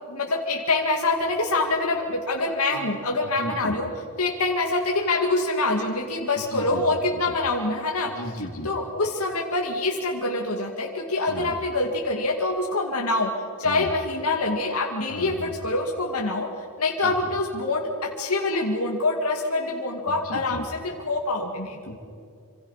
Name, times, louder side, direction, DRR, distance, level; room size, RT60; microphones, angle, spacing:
voice 1, 0.1-3.9 4.2-8.1 8.6-13.3 13.6-16.5 16.8-21.8, left 2 dB, 90° left, 1 dB, 2.2 m, -25 dB
voice 2, 3.2-3.7 6.4-6.8 7.2-7.3 8.0-8.7 11.3-11.6 13.6-13.9 15.1-15.5 17.0-17.1 20.1-20.7 21.9-22.0, left 1 dB, 75° left, 4 dB, 2.8 m, -35 dB
27.0 x 26.0 x 5.8 m, 2.3 s
head